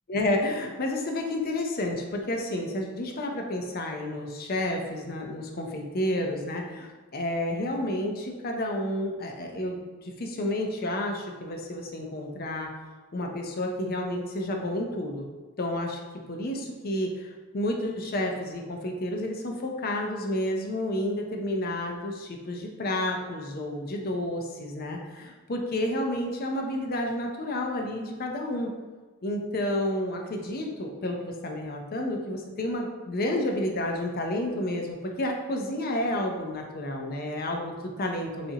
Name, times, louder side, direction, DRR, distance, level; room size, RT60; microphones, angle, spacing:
voice 1, 0.1-12.7 13.1-15.3 15.6-16.0 16.3-28.7 29.2-38.5, left 1 dB, 45° left, 2 dB, 0.6 m, -30 dB
7.0 x 2.6 x 2.8 m, 1.3 s
head